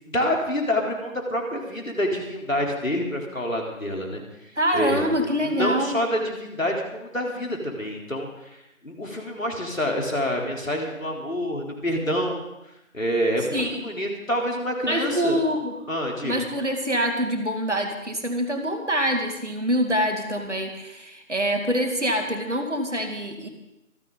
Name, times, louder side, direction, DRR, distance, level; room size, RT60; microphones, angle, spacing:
voice 1, 0.1-4.2 4.7-5.1 5.4-8.3 8.8-12.5 12.9-15.4 15.9-16.4, equal, 70° left, 0 dB, 3.9 m, -27 dB
voice 2, 4.6-6.0 13.5-13.8 14.9-15.8 16.2-23.5, equal, 55° right, 4 dB, 2.5 m, -25 dB
25.5 x 10.0 x 4.0 m, 0.92 s
figure-of-eight pair, 175°, 42 cm